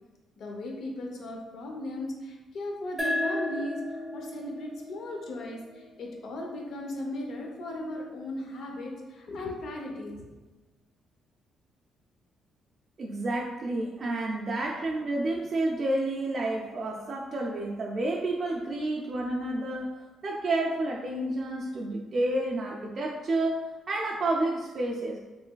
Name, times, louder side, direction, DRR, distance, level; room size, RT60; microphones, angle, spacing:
voice 1, 0.4-10.2, left 1 dB, 65° left, 1 dB, 0.6 m, -37 dB
sound 1, 3.0-6.2, left 1 dB, 5° right, 0.8 m, -34 dB
voice 2, 13.0-25.2, right 2 dB, 45° right, -2 dB, 0.3 m, -30 dB
3.2 x 3.0 x 2.2 m, 1.2 s
cardioid pair, 90°, 0 cm